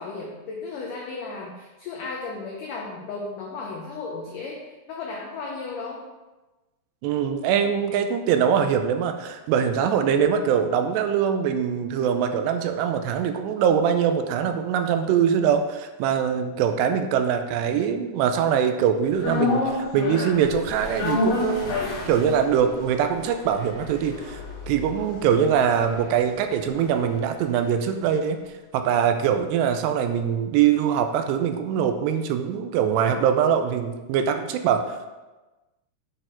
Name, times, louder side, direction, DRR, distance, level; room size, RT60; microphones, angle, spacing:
voice 1, 0.0-4.6 4.9-6.0, left 3 dB, 90° left, -1 dB, 1.8 m, -34 dB
voice 2, 7.0-21.8 22.1-24.4 24.7-28.4 28.7-35.0, right 8 dB, 85° right, 7 dB, 2.7 m, -23 dB
sound 1, 19.2-27.5 27.8-27.9, left 3 dB, 65° left, 3.8 m, -30 dB
8.5 x 4.5 x 4.4 m, 1.1 s
omnidirectional pair, 4.9 m